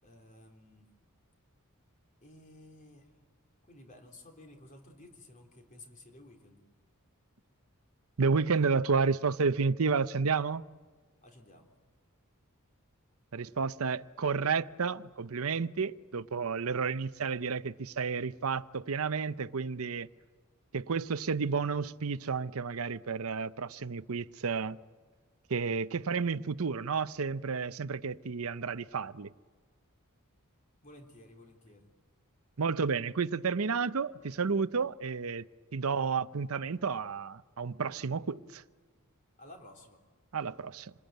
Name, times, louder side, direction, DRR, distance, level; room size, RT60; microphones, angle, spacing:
voice 1, 0.0-0.9 2.2-3.1 3.6-6.6 11.2-11.7 30.8-31.9 39.4-40.0, left 1 dB, 35° left, 3.6 m, -54 dB
voice 2, 8.2-10.6 13.3-20.1 20.7-24.8 25.5-29.3 32.6-35.4 35.7-38.6 40.3-40.9, right 5 dB, 75° right, 0.7 m, -31 dB
27.5 x 20.5 x 9.2 m
head